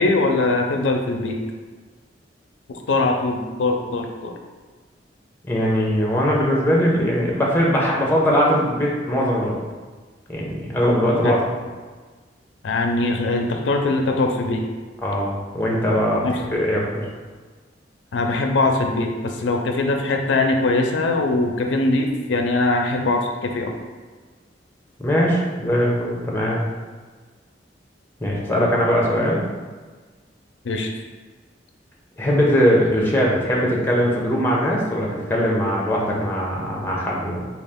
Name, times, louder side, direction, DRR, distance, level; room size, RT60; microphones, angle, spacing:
voice 1, 0.0-1.4 2.9-4.3 11.2-11.4 12.6-14.6 16.2-16.4 18.1-23.7 30.6-30.9, left 2 dB, 90° left, 3 dB, 0.4 m, -21 dB
voice 2, 5.5-9.5 10.3-11.4 15.0-17.1 25.0-26.6 28.2-29.4 32.2-37.5, equal, 10° left, -3 dB, 0.6 m, -20 dB
3.8 x 2.3 x 3.5 m, 1.4 s
head